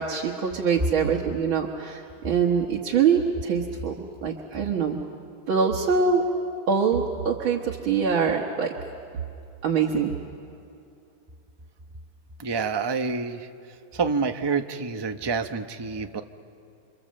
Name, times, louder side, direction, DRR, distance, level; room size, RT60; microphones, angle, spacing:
voice 1, 0.0-3.9 4.2-5.0 5.5-6.2 6.7-8.7 9.6-10.1, right 6 dB, 75° right, -2 dB, 2.2 m, -24 dB
voice 2, 12.4-13.5 13.9-16.2, right 5 dB, 35° right, 6 dB, 0.4 m, -27 dB
28.5 x 26.0 x 7.7 m, 2.6 s
omnidirectional pair, 2.2 m